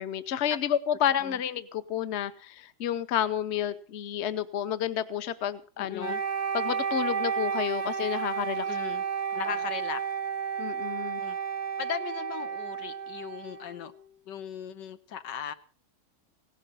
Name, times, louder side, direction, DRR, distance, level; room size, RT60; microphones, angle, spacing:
voice 1, 0.0-6.1 6.5-8.7 10.6-11.2, left 10 dB, 45° left, 13 dB, 1.0 m, -30 dB
voice 2, 5.8-6.2 8.6-9.0 9.3-10.0 11.2-11.4 11.8-13.9 14.3-15.5, left 9 dB, 80° left, 11 dB, 1.6 m, -38 dB
Wind instrument woodwind instrument, 6.0-14.0, right 7 dB, 40° right, 0.7 m, -32 dB
17.5 x 11.5 x 5.5 m, 0.41 s
omnidirectional pair, 1.9 m